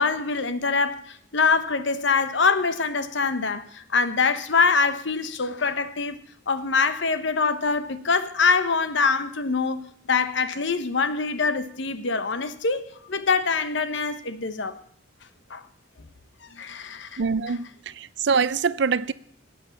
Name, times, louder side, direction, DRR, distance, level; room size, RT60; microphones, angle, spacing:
voice 1, 0.0-6.2 6.5-14.8 15.5-15.6 16.4-17.2, left 4 dB, 65° left, 0.9 m, -24 dB
voice 2, 17.2-19.1, right 5 dB, 60° right, 0.5 m, -24 dB
17.0 x 8.6 x 7.1 m
head